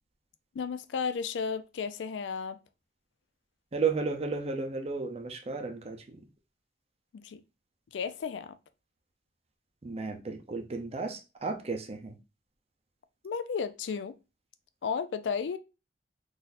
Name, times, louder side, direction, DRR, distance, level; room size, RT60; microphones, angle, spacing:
voice 1, 0.5-2.6 7.1-7.4 7.9-8.5 13.2-14.2 14.8-15.6, left 6 dB, 75° left, 0.4 m, -33 dB
voice 2, 3.7-6.2 9.8-12.2, right 4 dB, 35° right, 0.6 m, -33 dB
3.8 x 2.6 x 2.5 m
head